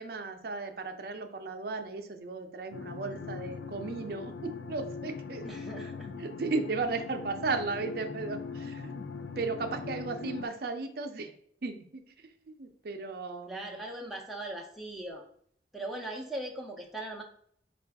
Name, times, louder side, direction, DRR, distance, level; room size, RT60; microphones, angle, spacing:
voice 1, 0.0-5.5 6.2-8.9 9.4-11.3 11.6-13.8, right 3 dB, 55° right, 6 dB, 0.5 m, -35 dB
sound 1, 2.7-10.5, left 4 dB, 85° left, 0.4 m, -41 dB
voice 2, 5.4-6.1 13.5-15.2 15.7-17.2, right 1 dB, ahead, -1 dB, 0.6 m, -39 dB
4.5 x 2.5 x 3.3 m, 0.63 s
head